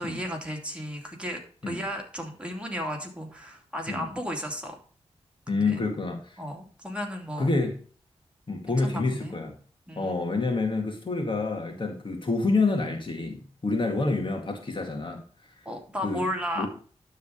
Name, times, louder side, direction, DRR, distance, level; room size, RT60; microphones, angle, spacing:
voice 1, 0.0-1.4 1.7-4.7 5.5-5.8 6.4-7.5 8.7-9.3 9.9-10.2 15.6-16.7, equal, 10° right, 1 dB, 2.7 m, -34 dB
voice 2, 5.5-6.4 7.4-7.7 8.5-9.6 9.9-15.2 16.0-16.2 16.6-16.7, left 3 dB, 50° left, 3 dB, 2.0 m, -28 dB
11.5 x 4.0 x 5.0 m, 0.42 s
cardioid pair, 60°, 11 cm